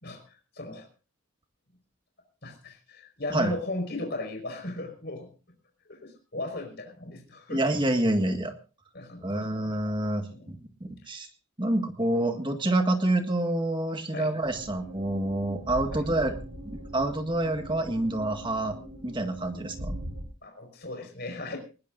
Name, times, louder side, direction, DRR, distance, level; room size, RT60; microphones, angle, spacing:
voice 1, 0.0-0.9 2.4-5.3 5.9-7.6 8.9-9.5 10.3-10.5 14.1-14.3 15.9-16.0 20.4-21.6, left 2 dB, 50° left, 4 dB, 5.0 m, -37 dB
voice 2, 7.5-8.5 9.2-11.3 11.6-16.4 16.9-20.0, right 1 dB, 20° right, 6 dB, 1.8 m, -27 dB
sound 1, 14.4-20.2, right 1 dB, 85° right, 4.6 m, -40 dB
20.5 x 19.0 x 2.6 m, 0.34 s
head